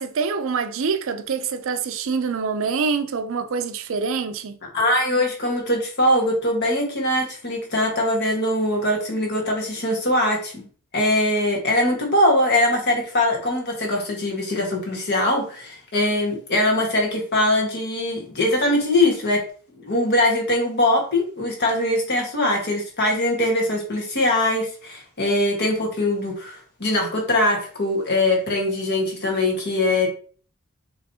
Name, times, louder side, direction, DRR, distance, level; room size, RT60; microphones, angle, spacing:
voice 1, 0.0-4.6, right 5 dB, 60° right, 0.4 m, -25 dB
voice 2, 4.7-10.7 10.9-19.4 19.8-30.1, left 1 dB, 50° left, 1.5 m, -22 dB
6.0 x 3.1 x 2.8 m
head